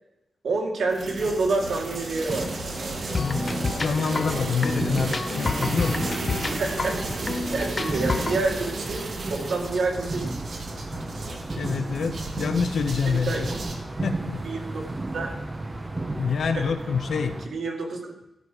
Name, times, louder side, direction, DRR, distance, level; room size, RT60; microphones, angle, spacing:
voice 1, 0.4-2.8 3.8-4.5 6.4-10.4 13.1-13.6 14.4-14.9 15.1-15.4 16.6-16.7 17.5-18.1, right 3 dB, 70° right, 1 dB, 1.9 m, -28 dB
sound 1, 0.9-13.8, right 2 dB, 55° right, 1.7 m, -34 dB
sound 2, 2.3-17.4, right 2 dB, 20° right, 0.8 m, -34 dB
voice 2, 3.1-6.4 11.6-13.5 14.0-14.4 16.2-17.4, left 5 dB, 75° left, 8 dB, 0.9 m, -27 dB
sound 3, 3.1-8.4, left 3 dB, 30° left, 0.7 m, -30 dB
12.5 x 4.8 x 6.6 m, 0.90 s
wide cardioid pair, 170°, 0 cm